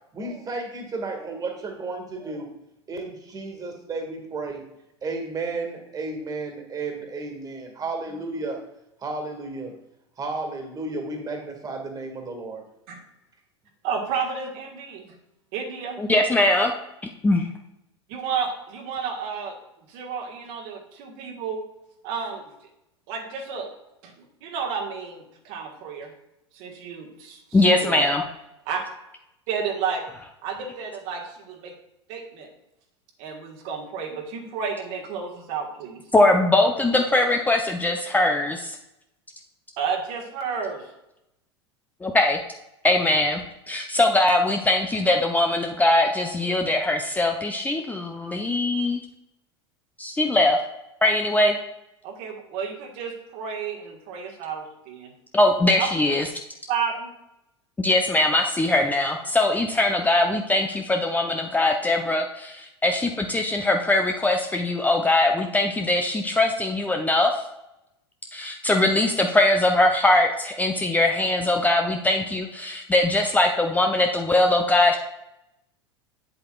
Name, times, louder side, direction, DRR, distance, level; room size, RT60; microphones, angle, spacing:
voice 1, 0.1-2.5 2.9-4.6 5.0-8.6 9.0-9.7 10.2-12.6, right 3 dB, 25° right, 4 dB, 2.0 m, -32 dB
voice 2, 13.8-15.0 15.5-16.0 18.1-19.5 19.9-21.6 22.0-22.4 23.1-23.7 24.0-26.1 26.5-28.1 28.7-28.8 29.5-30.0 30.4-31.7 32.1-32.5 33.2-36.0 39.8-40.9 52.0-55.1 55.8-55.9 56.7-57.1 60.0-60.2, right 6 dB, 55° right, 1 dB, 1.6 m, -31 dB
voice 3, 16.0-16.7 17.2-17.5 27.5-28.2 36.1-38.8 42.0-42.4 42.8-49.0 50.0-50.6 51.0-51.6 55.3-56.3 57.8-67.4 68.3-75.0, left 2 dB, 10° left, 3 dB, 0.7 m, -21 dB
8.5 x 7.8 x 2.4 m, 0.86 s
figure-of-eight pair, 80°, 15 cm